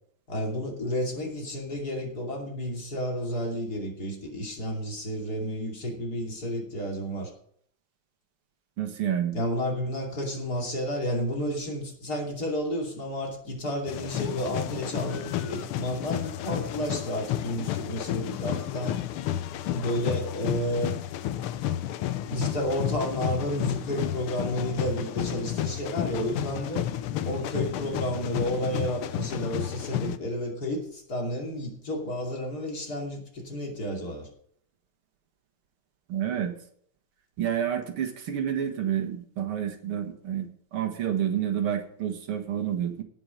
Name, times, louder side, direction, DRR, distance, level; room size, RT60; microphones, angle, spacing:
voice 1, 0.3-7.3 9.3-19.0 19.7-20.9 22.3-26.9 27.2-34.3, equal, 45° left, 0 dB, 3.2 m, -31 dB
voice 2, 8.8-9.4 30.0-30.2 36.1-36.5 37.4-43.0, right 9 dB, 85° right, 6 dB, 2.4 m, -29 dB
sound 1, 13.9-30.2, left 12 dB, 85° left, 1.6 m, -32 dB
18.0 x 6.0 x 5.1 m, 0.64 s
omnidirectional pair, 2.3 m